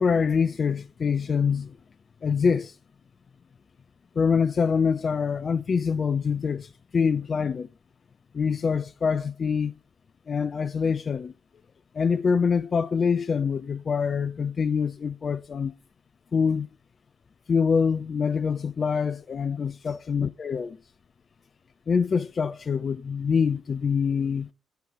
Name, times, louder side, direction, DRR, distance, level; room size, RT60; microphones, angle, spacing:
voice 1, 0.0-1.8 2.2-2.7 4.2-7.7 8.3-9.7 10.3-11.3 11.9-15.7 16.3-16.7 17.5-20.8 21.9-24.5, left 6 dB, 45° left, 0.4 m, -25 dB
9.0 x 8.7 x 2.8 m
hypercardioid pair, 45°, 0 cm